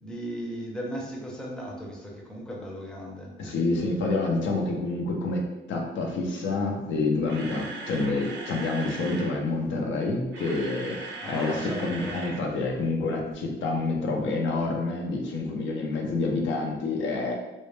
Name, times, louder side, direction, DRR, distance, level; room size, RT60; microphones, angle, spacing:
voice 1, 0.0-3.3 11.2-12.2, equal, 5° left, -2 dB, 0.5 m, -36 dB
voice 2, 3.4-17.3, left 3 dB, 70° left, 0 dB, 0.5 m, -28 dB
Camera, 7.0-9.4 10.1-12.4 12.7-12.8 13.3-13.4, right 3 dB, 65° right, 0.5 m, -39 dB
2.1 x 2.1 x 3.0 m, 1.0 s
cardioid pair, 90°, 20 cm